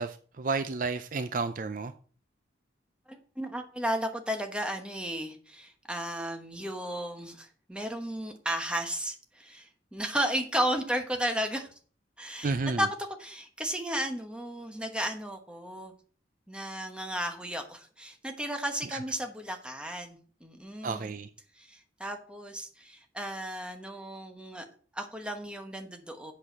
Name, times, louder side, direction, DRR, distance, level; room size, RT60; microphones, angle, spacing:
voice 1, 0.0-1.9 12.4-12.9 18.9-19.0 20.8-21.3, right 4 dB, 45° right, 0.4 m, -31 dB
voice 2, 3.1-11.7 12.2-12.9 13.2-15.9 16.5-21.1 21.5-24.7 24.9-26.3, equal, 5° right, 1.1 m, -34 dB
7.7 x 6.4 x 5.9 m
head